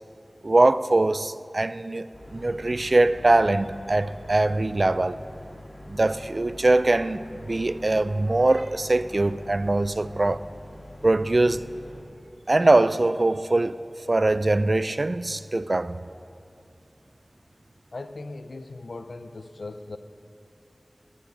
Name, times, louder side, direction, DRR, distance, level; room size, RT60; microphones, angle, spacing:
voice 1, 0.4-5.2 5.9-10.4 11.0-11.6 12.5-13.8 14.1-16.0, right 2 dB, 55° right, 0.3 m, -22 dB
sound 1, 2.1-12.0, left 1 dB, 40° left, 2.0 m, -44 dB
voice 2, 17.9-20.0, left 2 dB, 85° left, 0.5 m, -38 dB
11.5 x 7.3 x 7.0 m
wide cardioid pair, 45°, 0 cm